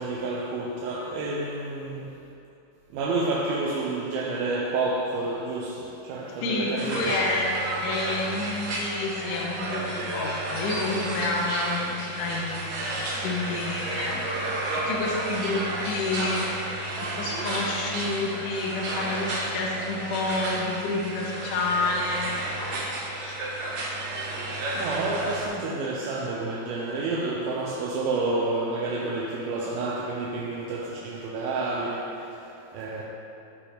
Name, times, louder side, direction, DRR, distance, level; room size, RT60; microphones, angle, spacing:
voice 1, 0.0-2.2 2.9-7.1 24.6-33.0, right 2 dB, 85° right, -4 dB, 2.4 m, -29 dB
voice 2, 6.4-7.5 7.8-14.2 14.7-16.5 17.2-22.3, left 3 dB, 75° left, -1 dB, 2.0 m, -29 dB
sound 1, 6.8-25.5, right 1 dB, 65° right, 1.6 m, -32 dB
12.5 x 4.3 x 3.3 m, 2.8 s
omnidirectional pair, 4.2 m